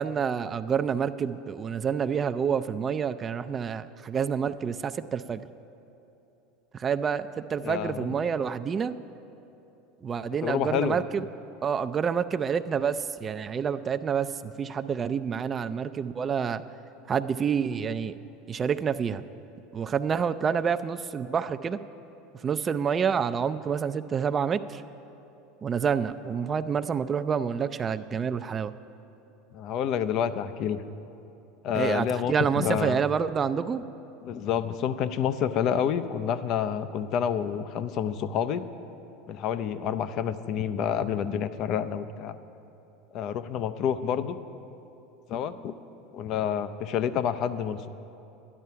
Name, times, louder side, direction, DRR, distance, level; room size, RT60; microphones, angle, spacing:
voice 1, 0.0-5.5 6.7-8.9 10.0-11.2 11.6-16.6 17.1-18.2 18.5-19.2 19.7-21.8 22.4-24.8 25.6-28.7 31.7-33.8, right 7 dB, 30° right, 12 dB, 0.4 m, -28 dB
voice 2, 7.6-8.2 10.4-11.0 29.5-30.8 31.6-33.0 34.2-38.6 39.3-42.4 43.1-44.4 45.3-45.7 46.1-47.9, left 8 dB, 50° left, 13 dB, 0.5 m, -28 dB
12.0 x 11.0 x 5.7 m, 2.9 s
supercardioid pair, 110°, 0 cm